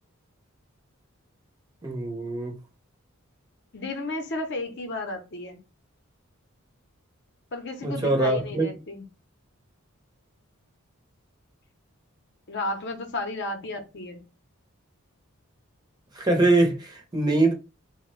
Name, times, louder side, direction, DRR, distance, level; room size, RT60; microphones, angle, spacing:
voice 1, 1.8-2.5 7.8-8.7 16.1-17.5, right 2 dB, 20° right, 0.6 m, -23 dB
voice 2, 3.7-5.6 7.5-9.0 12.5-14.2, left 2 dB, 55° left, 0.6 m, -33 dB
3.3 x 2.1 x 3.0 m
head